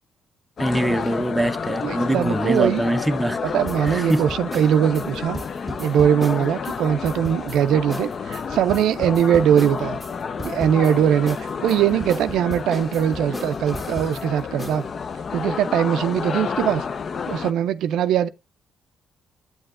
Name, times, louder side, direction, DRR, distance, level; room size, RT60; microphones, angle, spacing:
sound 1, 0.6-17.5, left 6 dB, 45° left, 0.4 m, -30 dB
voice 1, 0.6-3.4 3.8-4.3, right 1 dB, 5° right, 0.6 m, -23 dB
voice 2, 1.8-2.8 3.4-5.4 5.8-10.0 10.4-14.8 15.3-16.8 17.3-18.3, right 9 dB, 80° right, 0.3 m, -21 dB
sound 2, 3.7-6.8 7.0-7.6 7.9-8.1 8.3-10.1 10.4-10.9 11.3-14.2 14.6-14.8, equal, 15° left, 1.4 m, -35 dB
8.4 x 7.8 x 2.4 m
cardioid pair, 90°, 0 cm